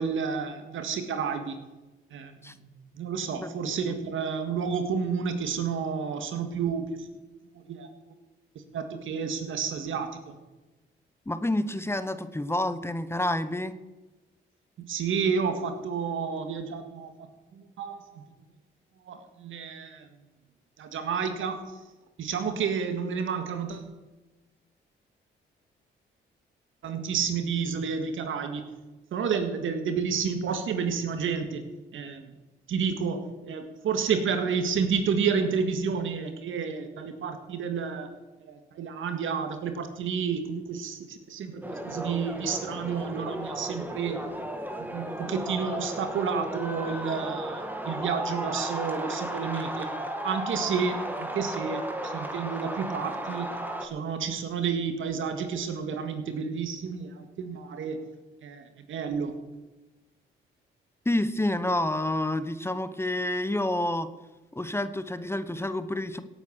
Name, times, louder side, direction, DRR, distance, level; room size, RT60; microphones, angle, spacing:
voice 1, 0.0-1.5 2.1-7.1 7.5-7.9 8.7-10.4 14.8-17.1 17.5-18.2 19.1-20.1 20.8-21.6 22.2-23.9 26.8-28.7 29.1-31.7 31.9-32.3 32.7-38.1 38.4-44.2 44.8-49.9 50.2-53.5 53.8-58.0 58.4-59.3, right 6 dB, 75° right, 7 dB, 1.9 m, -30 dB
voice 2, 3.4-3.9 11.3-13.7 61.0-64.1 64.5-66.2, left 1 dB, 10° left, 12 dB, 1.1 m, -29 dB
sound 1, 41.6-53.9, right 1 dB, 10° right, 2.1 m, -34 dB
17.0 x 8.2 x 6.5 m, 1.1 s
cardioid pair, 70°, 21 cm